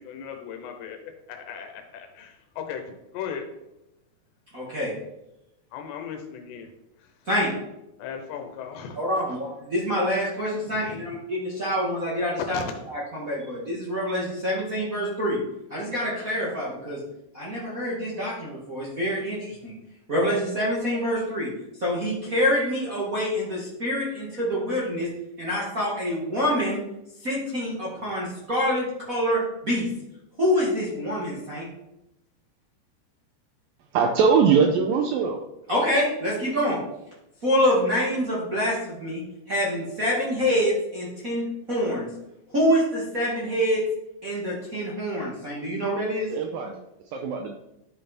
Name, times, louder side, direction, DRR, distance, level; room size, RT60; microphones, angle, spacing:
voice 1, 0.0-3.4 5.7-6.7 7.0-7.1 8.0-9.4 10.7-11.0 12.5-12.6, left 7 dB, 85° left, 4 dB, 3.1 m, -37 dB
voice 2, 4.5-4.9 7.3-7.5 8.9-12.6 12.9-15.4 15.7-17.0 17.3-19.7 20.1-21.5 21.8-25.1 25.4-26.8 27.2-29.9 30.4-31.7 35.7-36.8 37.4-39.2 39.5-42.1 42.5-43.8 44.2-46.3, equal, 55° right, -7 dB, 0.9 m, -26 dB
voice 3, 33.9-35.4 46.3-46.8 47.1-47.5, right 6 dB, 90° right, 3 dB, 2.0 m, -21 dB
11.0 x 5.6 x 4.2 m, 0.89 s
omnidirectional pair, 4.8 m